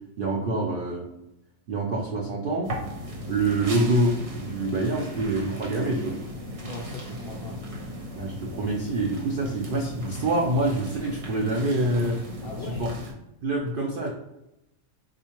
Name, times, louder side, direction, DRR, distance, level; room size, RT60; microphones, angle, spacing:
voice 1, 0.2-1.1 1.7-2.7 3.2-6.2 8.2-12.2 12.8-12.9 13.4-14.1, right 2 dB, 80° right, -1 dB, 0.4 m, -26 dB
sound 1, 2.6-13.1, equal, 55° right, 1.0 m, -37 dB
voice 2, 6.6-7.6 12.4-12.9, left 3 dB, 85° left, 0 dB, 0.5 m, -39 dB
3.6 x 2.5 x 2.9 m, 0.88 s
omnidirectional pair, 1.6 m